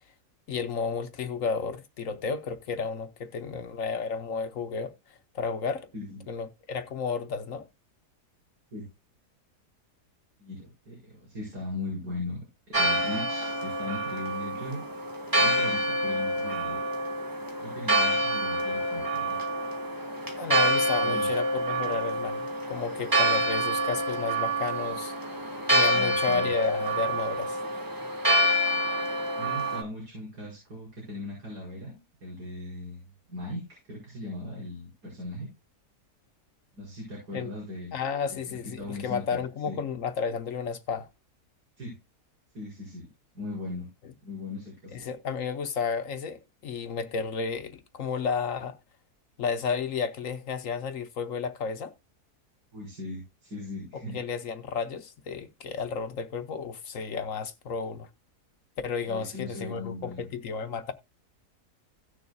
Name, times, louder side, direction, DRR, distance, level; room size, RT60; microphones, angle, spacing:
voice 1, 0.5-4.9 5.3-5.9 6.3-7.7 20.4-25.1 25.7-27.6 37.3-37.5 37.9-41.1 44.9-48.8 49.4-51.9 53.9-58.1 58.8-60.9, left 5 dB, 60° left, 1.2 m, -32 dB
voice 2, 5.9-6.3 8.7-8.9 10.4-14.8 15.4-16.8 17.6-19.4 21.0-21.3 25.9-26.5 29.4-33.0 33.3-35.5 36.8-38.0 38.8-39.4 39.7-39.8 41.8-42.0 42.5-43.1 43.3-43.9 44.2-44.9 52.7-54.2 59.1-60.2, left 2 dB, 85° right, 6.1 m, -38 dB
Church bell, 12.7-29.8, right 1 dB, 15° right, 1.3 m, -27 dB
17.5 x 6.7 x 2.3 m
omnidirectional pair, 1.7 m